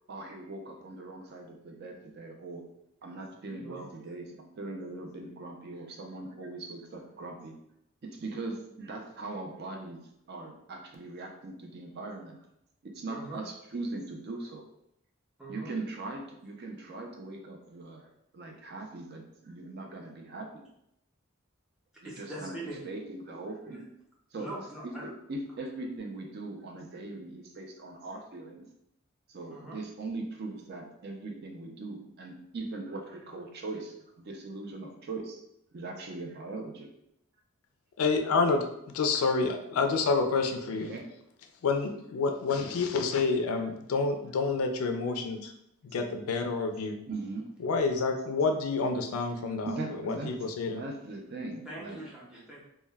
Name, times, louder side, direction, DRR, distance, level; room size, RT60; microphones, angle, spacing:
voice 1, 0.1-2.7 3.0-7.6 8.0-12.5 12.8-14.7 15.5-20.6 22.0-23.8 24.3-24.5 24.8-28.7 29.3-35.4 35.7-36.9 40.7-41.1 47.1-47.5 49.7-50.4 50.6-52.0, right 2 dB, 50° right, 2 dB, 0.4 m, -40 dB
voice 2, 13.1-13.4 15.4-15.7 22.0-22.9 23.6-23.8 24.3-25.1 29.5-29.8 39.1-39.3 51.6-52.6, right 2 dB, 5° right, -5 dB, 0.6 m, -42 dB
voice 3, 38.0-38.7 38.9-40.9 41.6-45.5 45.9-47.0 47.6-49.8 50.0-50.8, left 4 dB, 80° left, 5 dB, 0.4 m, -28 dB
2.2 x 2.1 x 3.3 m, 0.78 s
head